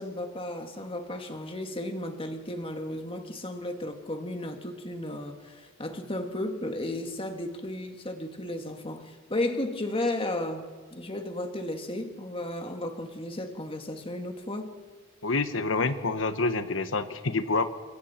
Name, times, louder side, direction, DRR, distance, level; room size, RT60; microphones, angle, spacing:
voice 1, 0.0-14.7, left 1 dB, 30° left, 5 dB, 2.1 m, -34 dB
voice 2, 15.2-17.7, left 3 dB, 90° left, 10 dB, 1.2 m, -27 dB
27.5 x 22.0 x 4.5 m, 1.4 s
head